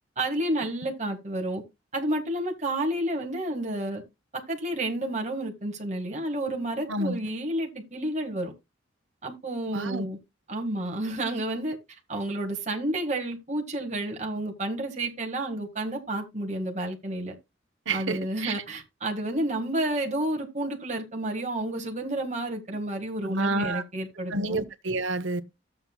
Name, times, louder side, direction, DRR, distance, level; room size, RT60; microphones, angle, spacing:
voice 1, 0.2-1.6 1.9-4.0 4.5-8.5 9.2-10.2 10.5-11.8 12.1-17.3 17.9-24.6, right 1 dB, 35° right, 1.8 m, -30 dB
voice 2, 6.9-7.2 9.7-10.1 17.9-18.5 23.2-23.8 24.3-25.4, right 2 dB, 75° right, 0.9 m, -29 dB
12.5 x 7.7 x 2.3 m
head